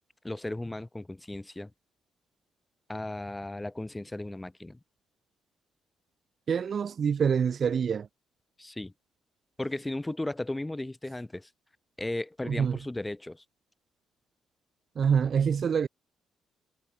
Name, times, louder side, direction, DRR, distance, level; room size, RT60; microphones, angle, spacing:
voice 1, 0.2-1.7 2.9-4.8 8.6-8.9 9.6-11.5 12.0-13.4, left 1 dB, 10° left, 4.2 m, -35 dB
voice 2, 6.5-8.1 12.4-12.8 15.0-15.9, right 7 dB, 50° right, 2.1 m, -26 dB
cardioid pair, 90°, 0 cm